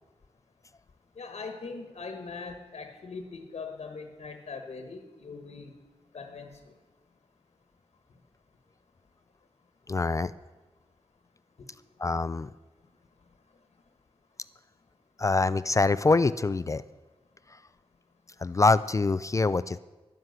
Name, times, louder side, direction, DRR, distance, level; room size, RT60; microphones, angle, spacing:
voice 1, 1.1-5.7 6.1-6.7 11.6-11.7, left 4 dB, 85° left, 6 dB, 1.3 m, -41 dB
voice 2, 9.9-10.3 12.0-12.5 15.2-16.8 17.5-17.6 18.4-19.8, left 3 dB, 30° left, 16 dB, 0.3 m, -25 dB
11.5 x 10.5 x 7.9 m, 1.2 s
wide cardioid pair, 125°, 11 cm